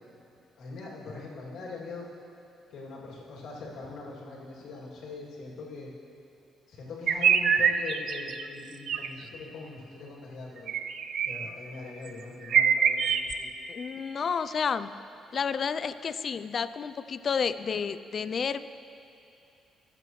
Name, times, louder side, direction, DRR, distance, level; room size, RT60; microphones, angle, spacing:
voice 1, 0.6-2.1 2.7-5.9 6.7-10.7 11.2-13.5, left 3 dB, 75° left, -5 dB, 2.6 m, -42 dB
sound 1, 7.1-8.4 8.9-9.1 10.7-11.5 12.1-12.2 12.4-13.3, right 7 dB, 70° right, 0.4 m, -25 dB
voice 2, 13.7-14.9 15.3-18.6, left 6 dB, 50° left, 13 dB, 0.4 m, -30 dB
21.5 x 7.7 x 3.2 m, 2.6 s
cardioid pair, 90°, 0 cm